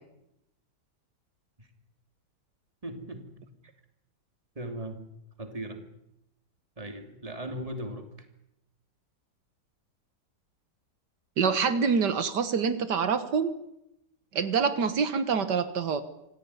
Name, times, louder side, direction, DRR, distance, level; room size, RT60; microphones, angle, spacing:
voice 1, 2.8-3.4 4.5-5.1 5.4-5.9 6.8-8.1, right 1 dB, 20° right, 6 dB, 3.0 m, -38 dB
voice 2, 11.4-13.5 14.3-16.0, right 6 dB, 80° right, 12 dB, 2.0 m, -26 dB
26.5 x 16.5 x 9.8 m, 0.86 s
omnidirectional pair, 1.8 m